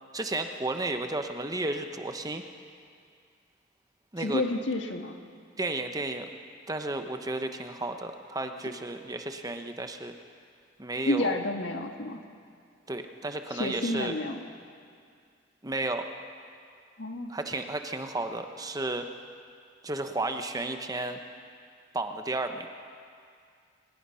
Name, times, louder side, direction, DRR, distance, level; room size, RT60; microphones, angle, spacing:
voice 1, 0.1-2.4 4.1-4.4 5.6-6.3 6.7-10.1 10.8-11.4 12.9-14.2 15.6-16.0 17.3-19.1 19.8-21.2 21.9-22.7, right 2 dB, 20° right, 6 dB, 0.9 m, -33 dB
voice 2, 4.2-5.2 11.0-12.2 13.5-14.4 17.0-17.3, left 2 dB, 70° left, 4 dB, 1.6 m, -30 dB
23.5 x 20.0 x 5.7 m, 2.3 s
head